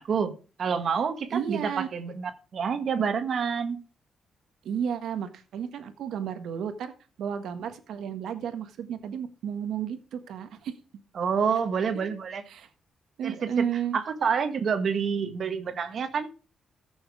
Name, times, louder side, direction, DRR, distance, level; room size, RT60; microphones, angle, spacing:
voice 1, 0.0-3.8 11.1-12.4 13.2-13.7 13.9-16.3, right 6 dB, 60° right, 1.6 m, -28 dB
voice 2, 1.3-1.9 4.6-6.9 7.2-10.7 11.9-12.0 12.5-12.7 13.2-14.0, right 8 dB, 85° right, 1.5 m, -32 dB
15.0 x 6.3 x 4.8 m
cardioid pair, 85°, 0 cm